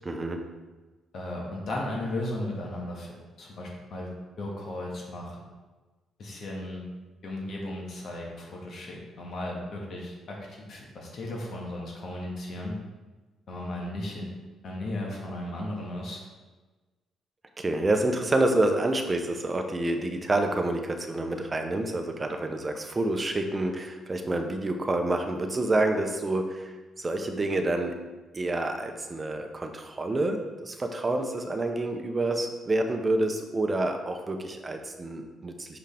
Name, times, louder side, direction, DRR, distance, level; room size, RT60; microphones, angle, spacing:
voice 1, 0.1-0.5 17.6-28.0 28.3-35.8, right 2 dB, 25° right, 5 dB, 0.8 m, -28 dB
voice 2, 1.1-4.1 4.4-5.5 6.2-6.8 7.2-12.8 13.5-14.3 14.6-16.3, left 1 dB, 60° left, -2 dB, 1.8 m, -35 dB
6.2 x 5.5 x 3.5 m, 1.2 s
cardioid pair, 90°, 0 cm